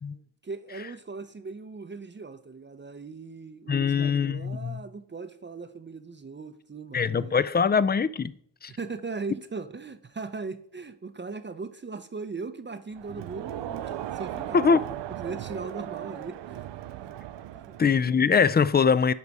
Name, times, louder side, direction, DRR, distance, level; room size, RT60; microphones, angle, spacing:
voice 1, 0.1-7.4 8.7-16.6 17.5-17.7, right 4 dB, 25° right, 0.6 m, -39 dB
voice 2, 3.7-4.8 6.9-8.3 8.6-8.7 14.5-14.8 17.8-19.1, left 6 dB, 25° left, 0.4 m, -22 dB
Crowd, 12.9-18.1, right 11 dB, 85° right, 0.5 m, -37 dB
10.5 x 4.0 x 4.7 m
cardioid pair, 60°, 42 cm